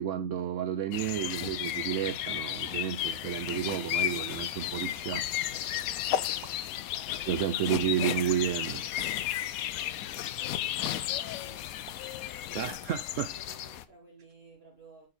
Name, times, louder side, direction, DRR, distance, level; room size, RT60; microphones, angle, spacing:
voice 1, 0.0-5.8 7.3-8.8 12.5-13.3, right 10 dB, 85° right, 0.6 m, -32 dB
sound 1, 0.9-13.8, left 12 dB, 70° left, 0.9 m, -34 dB
sound 2, 3.0-12.7, left 13 dB, 85° left, 1.3 m, -40 dB
sound 3, 3.7-4.0 5.0-5.3 6.3-6.5 7.7-8.1 8.8-9.1 10.8-10.9 11.8-13.0, right 8 dB, 65° right, 1.3 m, -51 dB
voice 2, 5.7-6.6 7.1-7.8 9.3-11.8 12.8-15.1, right 3 dB, 35° right, 4.2 m, -58 dB
7.0 x 6.6 x 4.1 m
omnidirectional pair, 1.9 m